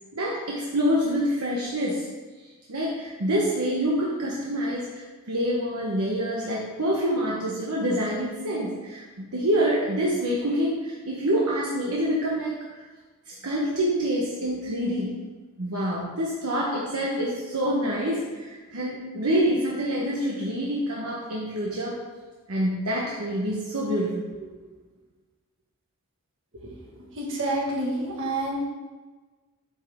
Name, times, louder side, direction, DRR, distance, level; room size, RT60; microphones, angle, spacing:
voice 1, 0.1-2.0 2.7-12.6 13.3-15.2 15.6-21.9 22.5-24.5, equal, 80° right, -4 dB, 1.2 m, -26 dB
voice 2, 26.5-28.6, right 1 dB, 65° right, -2 dB, 1.7 m, -29 dB
8.9 x 5.4 x 3.6 m, 1.3 s
head